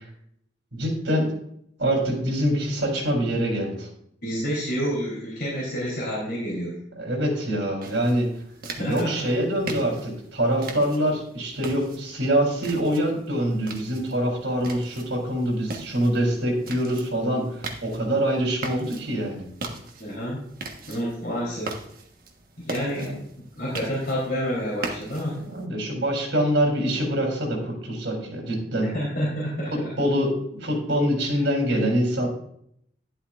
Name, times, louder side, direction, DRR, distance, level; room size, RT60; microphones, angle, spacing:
voice 1, 0.7-1.3 1.8-3.9 7.0-8.3 8.8-19.4 22.9-23.2 25.3-28.9 29.7-32.3, equal, 80° right, 2 dB, 3.5 m, -25 dB
voice 2, 4.2-6.8 8.8-9.3 20.0-20.4 20.9-21.7 22.6-23.2 23.6-25.4 28.9-29.9 31.3-31.4, equal, 50° left, -5 dB, 3.5 m, -29 dB
sound 1, 7.8-25.6, right 2 dB, 50° right, 1.3 m, -40 dB
11.5 x 11.5 x 2.5 m, 0.71 s
head